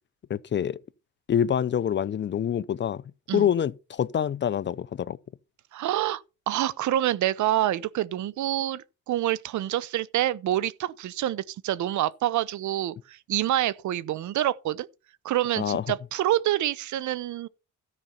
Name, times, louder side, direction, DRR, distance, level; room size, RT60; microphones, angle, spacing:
voice 1, 0.3-0.8 1.3-3.0 3.3-5.2 15.6-15.8, left 9 dB, 40° left, 0.5 m, -26 dB
voice 2, 5.7-14.9 15.2-17.5, right 13 dB, 70° right, 0.7 m, -27 dB
13.5 x 5.2 x 5.7 m
cardioid pair, 90°, 30 cm